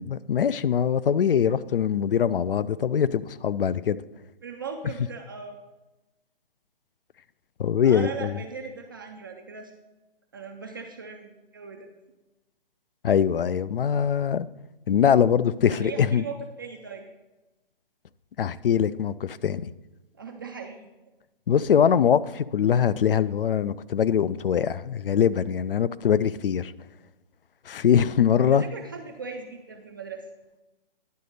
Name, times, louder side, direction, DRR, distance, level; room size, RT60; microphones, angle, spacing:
voice 1, 0.0-4.0 7.6-8.3 13.0-14.5 14.9-16.2 18.4-19.7 21.5-26.7 27.7-28.6, left 8 dB, 65° left, 0.4 m, -22 dB
voice 2, 4.4-5.6 7.8-9.7 10.3-11.9 15.7-17.1 20.2-20.9 28.5-30.3, right 5 dB, 25° right, 0.4 m, -38 dB
10.5 x 4.1 x 6.4 m
figure-of-eight pair, 135°, 29 cm